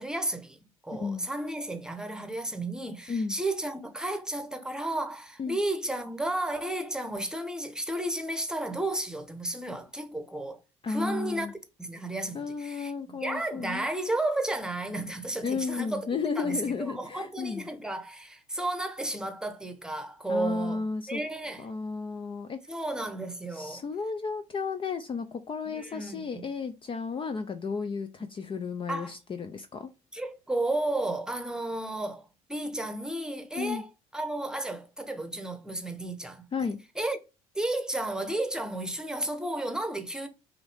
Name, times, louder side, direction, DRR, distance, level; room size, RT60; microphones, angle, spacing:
voice 1, 0.0-10.6 10.9-16.1 16.4-21.6 22.7-23.8 25.7-26.4 28.9-29.1 30.1-36.4 37.0-37.2 37.5-40.3, right 1 dB, 5° right, 1.0 m, -33 dB
voice 2, 0.9-1.3 3.1-3.3 5.4-5.6 10.8-11.5 12.3-13.9 15.4-17.7 20.3-21.2 21.6-22.6 23.5-29.9 33.6-33.8 36.5-36.8, left 5 dB, 30° left, 0.5 m, -33 dB
5.6 x 2.8 x 3.3 m
supercardioid pair, 80°, 16 cm